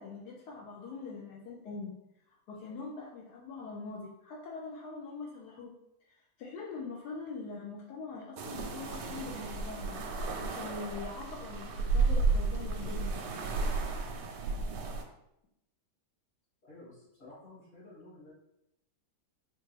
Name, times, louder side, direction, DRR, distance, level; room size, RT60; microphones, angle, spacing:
voice 1, 0.0-2.0 2.5-5.7 6.4-13.2, left 4 dB, 75° left, -3 dB, 1.1 m, -43 dB
sound 1, 8.4-15.0, right 4 dB, 80° right, 1.2 m, -32 dB
voice 2, 16.6-18.3, left 2 dB, 50° left, -6 dB, 1.8 m, -52 dB
4.4 x 2.4 x 3.2 m, 0.82 s
omnidirectional pair, 1.8 m